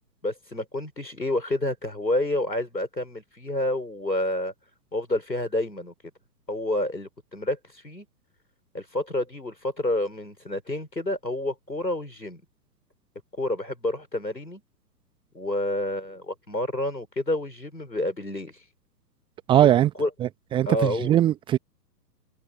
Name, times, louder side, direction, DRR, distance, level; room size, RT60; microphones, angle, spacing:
voice 1, 0.2-4.5 4.9-5.9 6.5-7.6 7.8-8.1 8.7-12.4 13.4-14.6 15.3-18.6 19.6-19.7 19.9-20.1 20.7-21.2, left 1 dB, 90° left, 4.6 m, -29 dB
voice 2, 19.5-19.9 20.5-21.6, right 12 dB, 10° right, 1.1 m, -19 dB
figure-of-eight pair, 125°, 49 cm